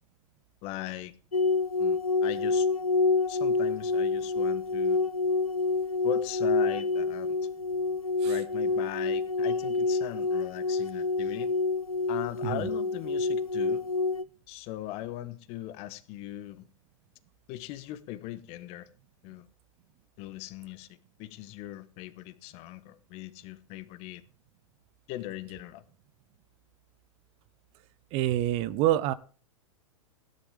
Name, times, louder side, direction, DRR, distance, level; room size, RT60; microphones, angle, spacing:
voice 1, 0.6-1.1 1.8-2.7 3.3-5.0 6.0-7.4 8.2-11.5 12.1-13.8 14.5-16.7 17.5-18.9 19.2-19.5 20.2-20.9 21.2-24.2 25.1-25.8, left 14 dB, 35° left, 1.3 m, -39 dB
sound 1, 1.3-14.2, left 3 dB, 85° left, 0.6 m, -27 dB
voice 2, 28.1-29.1, right 13 dB, 35° right, 0.7 m, -26 dB
17.0 x 10.5 x 3.5 m
figure-of-eight pair, 100°, 18 cm